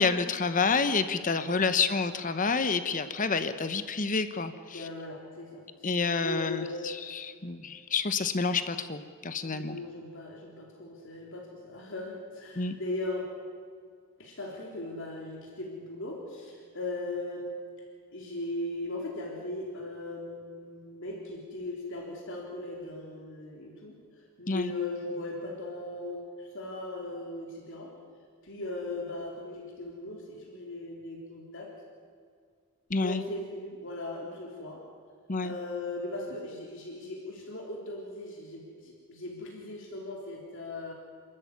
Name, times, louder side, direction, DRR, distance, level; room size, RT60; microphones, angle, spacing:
voice 1, 0.0-4.8 5.8-9.8 12.6-12.8 24.5-24.7 32.9-33.2 35.3-35.5, left 4 dB, 35° left, 11 dB, 1.0 m, -28 dB
voice 2, 4.7-5.9 6.2-6.8 9.4-13.3 14.2-17.5 18.1-27.9 28.4-31.7 33.0-34.8 35.4-40.9, left 2 dB, 60° left, -1 dB, 3.6 m, -38 dB
28.5 x 13.5 x 9.6 m, 2.1 s
head